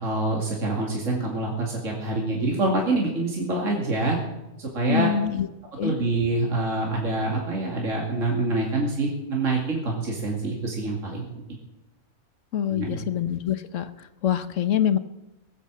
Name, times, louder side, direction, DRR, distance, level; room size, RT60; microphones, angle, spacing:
voice 1, 0.0-4.2 4.6-5.1 5.8-11.4 12.7-13.0, right 2 dB, 60° right, -1 dB, 2.7 m, -26 dB
voice 2, 4.9-5.5 5.8-5.9 12.5-15.0, left 10 dB, 60° left, 11 dB, 1.2 m, -25 dB
20.0 x 8.3 x 7.4 m, 0.97 s
omnidirectional pair, 1.5 m